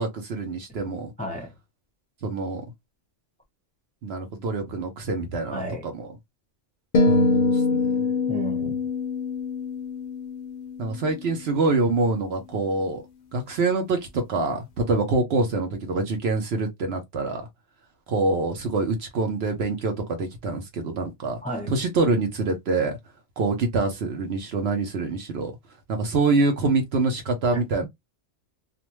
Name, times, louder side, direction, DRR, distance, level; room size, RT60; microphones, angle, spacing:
voice 1, 0.0-1.1 2.2-2.6 4.0-6.1 7.1-7.8 10.8-13.0 13.3-17.5 18.1-21.4 21.7-23.0 23.4-25.5 25.9-27.9, right 3 dB, 65° right, 0.9 m, -25 dB
voice 2, 1.2-1.5 5.4-5.9 8.3-8.8 21.4-21.7 27.5-27.8, equal, 5° left, 0.8 m, -33 dB
sound 1, 6.9-11.3, left 3 dB, 60° left, 0.6 m, -24 dB
2.5 x 2.2 x 2.9 m
omnidirectional pair, 1.2 m